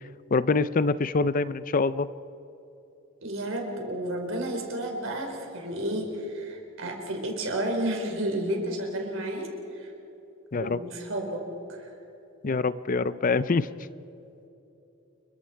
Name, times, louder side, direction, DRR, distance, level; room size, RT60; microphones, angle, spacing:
voice 1, 0.3-2.1 10.5-10.8 12.4-13.7, left 4 dB, 40° left, 15 dB, 0.5 m, -25 dB
voice 2, 3.2-9.5 9.7-9.9 10.5-11.4 11.7-11.9, right 1 dB, 70° right, 1 dB, 4.6 m, -31 dB
29.5 x 23.5 x 4.6 m, 3.0 s
head